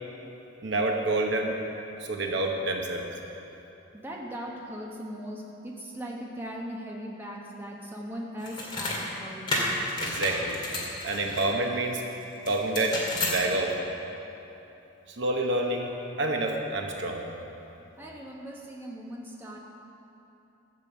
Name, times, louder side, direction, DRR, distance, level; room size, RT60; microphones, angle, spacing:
voice 1, 0.6-1.6 2.0-3.0 10.0-10.6 11.0-12.0 12.5-13.8 15.2-15.9 16.2-17.2, right 2 dB, 60° right, 2 dB, 1.0 m, -28 dB
voice 2, 3.9-9.6 18.0-19.6, equal, 10° right, -2 dB, 1.2 m, -39 dB
sound 1, 8.4-9.0 9.5-11.5 12.4-13.4, left 2 dB, 25° left, 2.1 m, -31 dB
12.0 x 6.9 x 8.1 m, 2.9 s
head